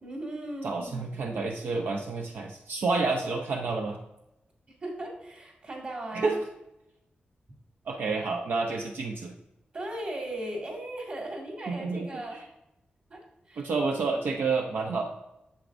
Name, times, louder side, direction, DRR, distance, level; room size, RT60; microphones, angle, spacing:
voice 1, 0.0-1.0 4.8-6.4 9.7-12.4 13.1-13.7 14.4-14.5, right 1 dB, 40° right, -1 dB, 2.0 m, -37 dB
voice 2, 0.6-4.0 6.1-6.4 7.9-9.3 11.7-12.1 13.6-15.0, right 4 dB, 85° right, 2 dB, 0.7 m, -29 dB
8.2 x 7.2 x 2.6 m, 0.89 s
wide cardioid pair, 170°, 3 cm